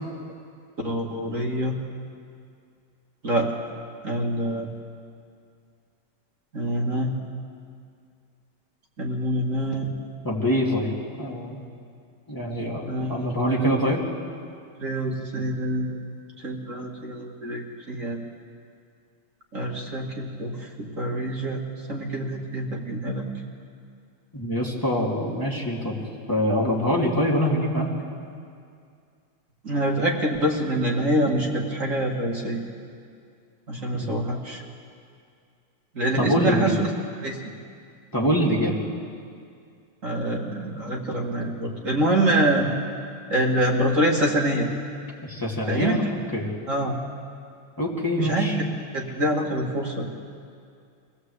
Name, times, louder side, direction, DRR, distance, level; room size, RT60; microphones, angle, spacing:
voice 1, 0.8-1.8 3.2-3.5 4.0-4.7 6.5-7.2 9.0-9.9 12.9-13.9 14.8-16.0 16.4-18.2 19.5-21.6 21.9-23.2 29.6-32.6 33.7-34.6 35.9-36.9 37.2-37.5 40.0-42.7 43.3-44.7 45.7-46.1 46.7-47.0 48.2-48.5 48.9-50.1, right 1 dB, 40° right, -1 dB, 2.4 m, -25 dB
voice 2, 10.2-11.6 12.3-14.0 24.3-26.0 26.3-27.9 33.9-34.1 36.2-36.8 38.1-38.7 45.2-46.0 46.3-46.5 47.8-48.6, equal, 10° left, -3 dB, 2.7 m, -24 dB
24.5 x 17.0 x 8.1 m, 2.3 s
omnidirectional pair, 2.3 m